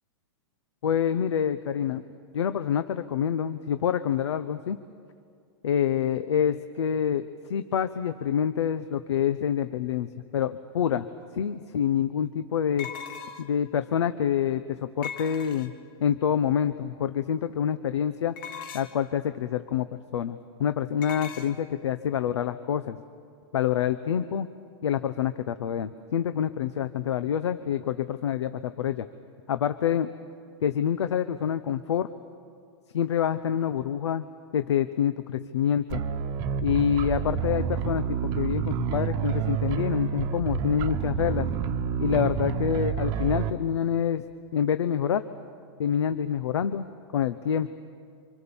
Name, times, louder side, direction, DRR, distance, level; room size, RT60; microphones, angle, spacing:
voice 1, 0.8-2.0 2.3-4.8 5.6-11.1 11.3-12.9 13.4-15.7 16.0-18.3 18.7-19.9 20.1-23.0 23.5-24.5 24.8-29.1 29.5-30.1 30.6-32.1 32.9-34.3 34.5-36.0 36.6-41.5 42.0-44.2 44.5-45.2 45.8-46.9 47.1-47.7, left 8 dB, 85° left, 11 dB, 1.0 m, -27 dB
sound 1, 11.2-11.3 12.8-13.6 15.0-15.9 18.4-19.1 21.0-21.5, left 7 dB, 55° left, 2.0 m, -39 dB
sound 2, 35.9-43.5, right 7 dB, 30° right, 1.1 m, -29 dB
29.0 x 26.0 x 7.2 m, 2.2 s
supercardioid pair, 165°, 14 cm